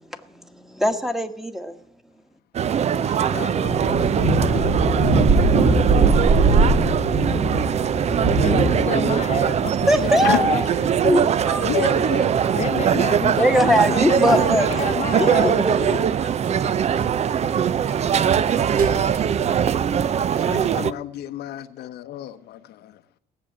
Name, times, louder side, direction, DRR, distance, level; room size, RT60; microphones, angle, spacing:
voice 1, 0.7-1.7 9.9-10.6 11.0-11.7 13.4-16.0 16.6-16.7, equal, ahead, 1.4 m, -21 dB
sound 1, 2.5-20.9, right 8 dB, 40° right, 0.6 m, -21 dB
voice 2, 2.9-4.9 10.2-10.7 11.6-12.3 20.5-23.0, left 12 dB, 75° left, 0.9 m, -32 dB
sound 2, 3.6-20.0, right 3 dB, 60° right, 3.4 m, -23 dB
voice 3, 8.4-10.9 12.6-15.6, left 8 dB, 40° left, 0.8 m, -29 dB
17.5 x 7.0 x 8.7 m
cardioid pair, 110°, 17 cm